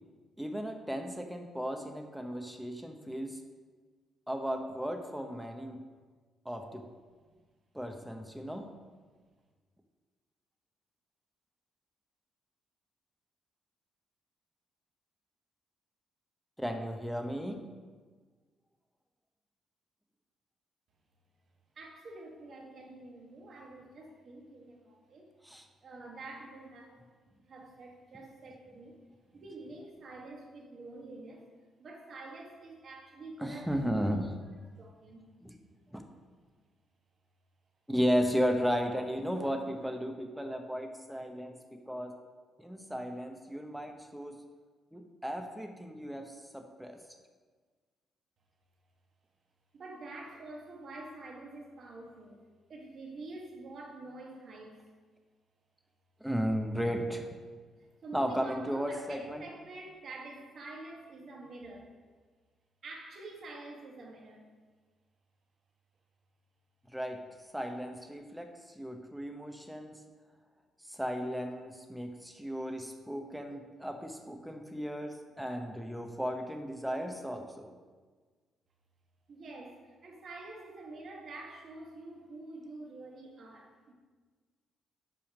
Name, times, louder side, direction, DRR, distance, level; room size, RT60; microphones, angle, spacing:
voice 1, 0.4-3.4 4.3-5.8 6.4-6.8 7.7-8.6 16.6-17.6 25.4-25.7 33.4-34.3 35.4-35.6 35.9-36.0 37.9-42.1 42.6-44.3 44.9-47.0 56.2-57.3 58.1-59.4 66.9-67.2 67.5-70.0 70.9-77.7, equal, 5° right, 4 dB, 0.8 m, -35 dB
voice 2, 21.7-25.3 25.8-27.0 27.5-29.0 29.3-31.5 31.8-34.1 34.8-35.3 36.3-36.4 49.7-52.4 52.7-54.8 57.6-61.9 62.8-64.4 79.3-83.9, right 2 dB, 55° right, 0 dB, 1.3 m, -47 dB
5.8 x 4.9 x 6.2 m, 1.4 s
cardioid pair, 90°, 0 cm